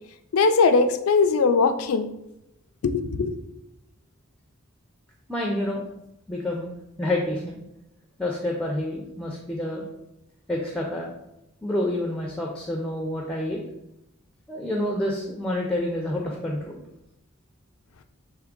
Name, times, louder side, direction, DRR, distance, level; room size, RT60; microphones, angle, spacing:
voice 1, 0.3-2.1 2.8-3.4, left 4 dB, 80° left, 9 dB, 0.4 m, -20 dB
voice 2, 5.3-5.9 6.3-6.7 7.0-7.6 8.2-9.8 10.5-11.1 11.6-13.6 14.5-16.8, left 1 dB, 5° left, -1 dB, 0.4 m, -28 dB
3.5 x 3.2 x 3.6 m, 0.86 s
head